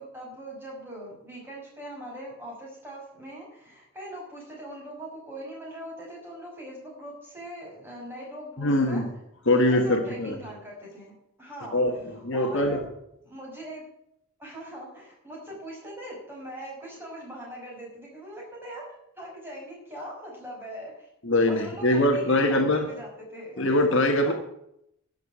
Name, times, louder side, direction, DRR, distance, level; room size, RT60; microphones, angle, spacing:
voice 1, 0.0-9.1 9.5-11.1 11.4-12.8 13.3-13.8 14.4-21.1 21.5-23.7 24.2-24.3, right 1 dB, 10° right, -3 dB, 5.6 m, -41 dB
voice 2, 8.6-9.1 9.5-10.3 11.7-12.8 21.2-22.9 23.6-24.3, left 1 dB, 55° left, 5 dB, 1.5 m, -23 dB
12.0 x 6.8 x 9.7 m, 0.77 s
head